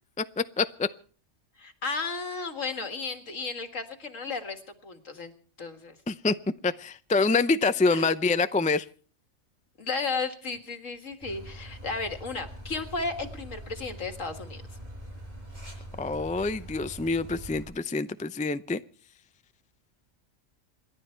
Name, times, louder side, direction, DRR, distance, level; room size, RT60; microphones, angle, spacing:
voice 1, 0.2-0.9 6.1-6.4 6.6-8.9 16.0-18.8, left 3 dB, 15° left, 12 dB, 0.3 m, -26 dB
voice 2, 1.6-5.3 5.6-6.0 7.9-8.1 9.8-14.6, left 4 dB, 70° left, 7 dB, 2.2 m, -34 dB
sound 1, 11.2-17.6, right 1 dB, 30° right, 7.0 m, -43 dB
28.0 x 11.5 x 4.5 m, 0.43 s
omnidirectional pair, 1.4 m